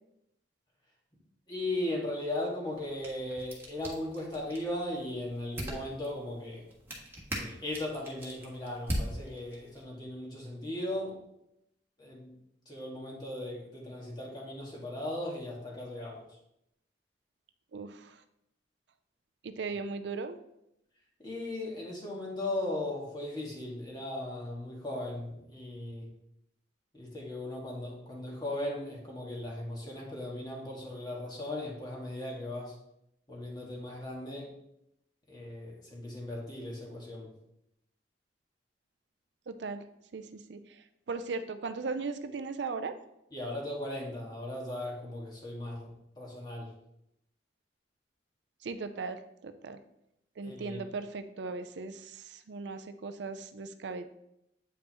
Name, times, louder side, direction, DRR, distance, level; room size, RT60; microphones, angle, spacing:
voice 1, 1.5-6.7 7.3-11.2 12.0-12.3 12.7-16.2 21.2-26.1 26.9-32.7 33.3-34.5 35.3-37.3 43.3-46.7 50.4-50.8, left 1 dB, 25° left, -3 dB, 1.7 m, -37 dB
sound 1, 2.7-9.8, equal, 15° right, 1.5 m, -41 dB
voice 2, 17.7-18.2 19.4-20.4 39.5-39.8 40.1-42.9 48.6-49.8 50.4-54.0, right 4 dB, 70° right, 10 dB, 0.5 m, -38 dB
8.6 x 5.3 x 3.0 m, 0.80 s
head